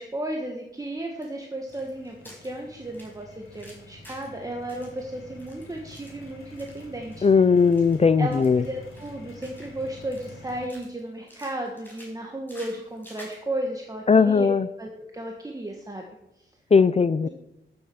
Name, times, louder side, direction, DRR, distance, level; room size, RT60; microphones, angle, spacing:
voice 1, 0.0-7.4 8.2-14.5 14.8-16.0 17.2-17.3, right 1 dB, 15° right, 1 dB, 1.5 m, -34 dB
sound 1, 1.2-4.4 4.7-6.8 7.1-7.3 7.6-8.0 8.3-9.8 10.1-11.0 11.3-13.4, equal, 10° left, 4.9 m, -50 dB
sound 2, 1.7-10.7, left 2 dB, 80° left, 3.7 m, -47 dB
voice 2, 7.2-8.6 14.1-14.7 16.7-17.3, left 5 dB, 30° left, 14 dB, 0.4 m, -18 dB
13.0 x 7.7 x 7.1 m, 0.87 s
wide cardioid pair, 145°, 21 cm